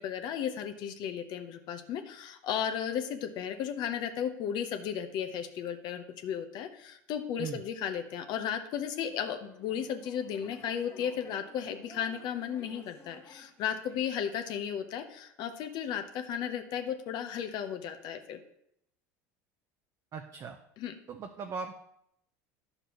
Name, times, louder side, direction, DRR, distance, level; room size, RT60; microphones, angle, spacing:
voice 1, 0.0-18.4 20.8-20.9, left 8 dB, 55° left, 7 dB, 0.8 m, -35 dB
sound 1, 8.7-14.1, left 4 dB, 30° left, 1.4 m, -55 dB
voice 2, 20.1-20.6 21.1-21.7, right 5 dB, 40° right, 5 dB, 0.6 m, -38 dB
10.0 x 6.6 x 3.1 m, 0.75 s
hypercardioid pair, 90°, 9 cm